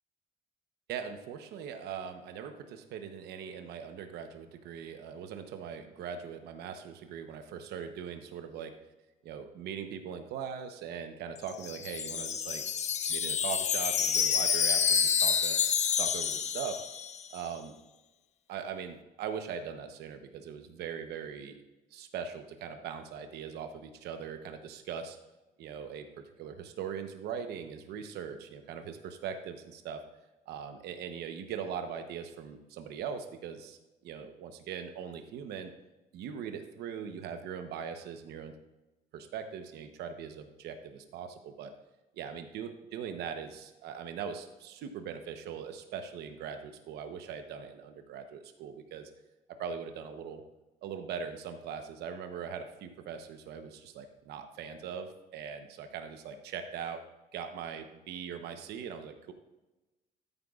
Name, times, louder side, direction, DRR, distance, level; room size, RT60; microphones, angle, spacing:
voice 1, 0.9-8.7 9.2-12.6 13.1-15.6 15.9-16.8 17.3-17.7 18.5-21.6 21.9-25.2 25.6-26.1 26.4-30.0 30.5-33.8 34.0-35.7 36.1-38.5 39.1-41.7 42.2-49.1 49.5-50.4 50.8-57.0 57.3-59.3, right 7 dB, 75° right, 7 dB, 0.9 m, -40 dB
Wind chime, 11.4-17.4, left 7 dB, 40° left, 0.7 m, -29 dB
13.0 x 9.0 x 2.4 m, 1.1 s
cardioid pair, 110°, 17 cm